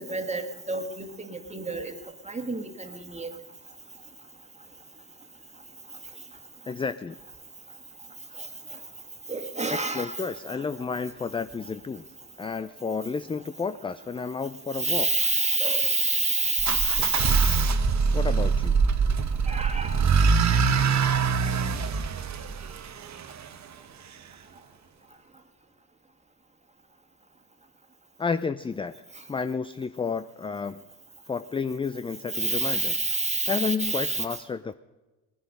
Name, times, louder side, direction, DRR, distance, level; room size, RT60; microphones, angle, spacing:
voice 1, 0.0-1.9 2.3-3.3 9.3-10.2 14.8-17.6 19.5-20.0 32.3-34.2, right 3 dB, 15° right, 6 dB, 1.7 m, -27 dB
voice 2, 6.7-7.2 9.7-12.1 12.4-15.2 18.1-18.8 28.2-28.9 29.3-30.8 31.3-33.0 33.2-34.7, left 5 dB, 15° left, 12 dB, 0.4 m, -31 dB
sound 1, 16.6-23.5, right 5 dB, 40° right, 1.0 m, -24 dB
19.0 x 10.5 x 5.3 m, 1.2 s
supercardioid pair, 75°, 42 cm